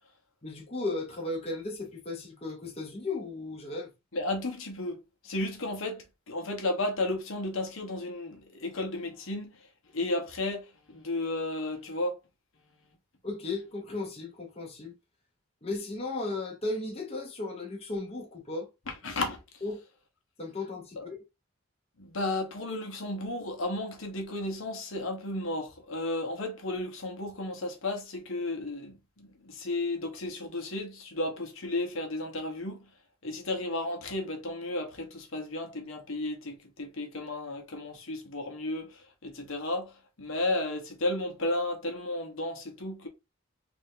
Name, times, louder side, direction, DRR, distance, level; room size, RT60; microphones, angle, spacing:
voice 1, 0.4-3.9 13.2-14.9 15.6-18.7 19.6-19.8 20.4-21.0, left 2 dB, 30° left, 0.9 m, -35 dB
voice 2, 4.1-9.7 9.9-12.2 18.9-19.4 21.0-21.1 22.0-32.9 33.2-43.1, left 2 dB, 70° left, 1.0 m, -33 dB
3.4 x 2.6 x 3.6 m
head